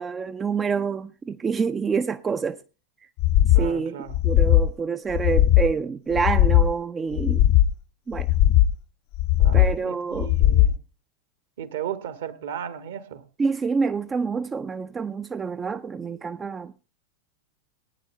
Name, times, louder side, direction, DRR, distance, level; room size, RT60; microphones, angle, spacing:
voice 1, 0.0-2.6 3.6-4.0 4.2-7.4 8.1-8.3 9.5-10.3 13.4-16.7, right 5 dB, 20° right, 0.5 m, -27 dB
sound 1, 3.2-3.7 4.1-4.7 5.1-5.7 6.1-6.7 7.1-7.7 8.1-8.7 9.1-9.7 10.1-10.7, left 12 dB, 45° left, 0.6 m, -18 dB
voice 2, 3.5-4.2 5.6-5.8 9.4-10.8 11.6-13.2, right 9 dB, 60° right, 1.5 m, -35 dB
19.0 x 9.6 x 3.2 m
figure-of-eight pair, 90°, 0 cm